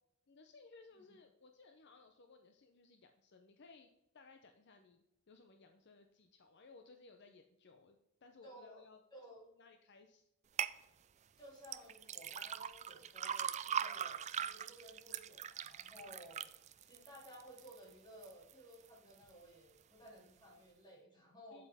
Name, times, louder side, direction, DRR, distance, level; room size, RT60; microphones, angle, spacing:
voice 1, 0.3-9.0 9.6-10.3 21.5-21.7, left 4 dB, 60° left, 6 dB, 0.7 m, -61 dB
voice 2, 8.4-9.4 11.4-16.5 16.8-21.6, equal, 20° left, -3 dB, 3.2 m, -57 dB
sound 1, 10.6-10.8 11.6-17.8 18.2-18.7 19.2-19.3, right 8 dB, 35° right, 0.4 m, -41 dB
8.2 x 7.6 x 3.5 m, 0.85 s
head